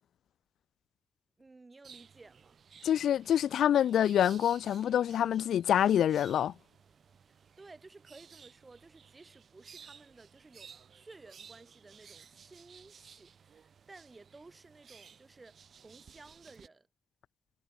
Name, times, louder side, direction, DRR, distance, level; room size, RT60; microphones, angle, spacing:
voice 1, 1.4-2.6 7.3-16.9, right 3 dB, 20° right, 6.5 m, -56 dB
sound 1, 1.8-16.7, right 7 dB, 50° right, 7.5 m, -56 dB
voice 2, 2.8-6.5, left 10 dB, 85° left, 0.5 m, -26 dB
wide cardioid pair, 135°, 0 cm